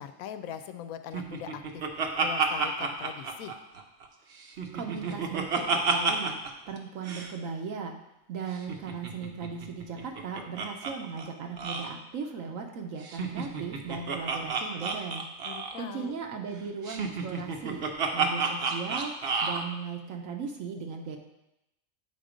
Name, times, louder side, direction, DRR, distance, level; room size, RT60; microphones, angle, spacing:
voice 1, 0.0-1.8 2.2-3.5 15.4-16.1, left 9 dB, 90° left, 10 dB, 1.0 m, -41 dB
Laughter, 1.1-4.1 4.4-6.5 6.8-6.9 7.0-7.3 8.5-10.9 11.2-11.3 11.6-11.9 13.0-15.8 16.8-19.6, right 5 dB, 55° right, 0.9 m, -30 dB
voice 2, 4.7-6.4 6.7-7.9 8.3-15.3 15.8-17.8 18.1-19.1 19.4-21.2, right 5 dB, 75° right, 3 dB, 1.1 m, -37 dB
8.0 x 3.9 x 5.0 m, 0.89 s
omnidirectional pair, 1.4 m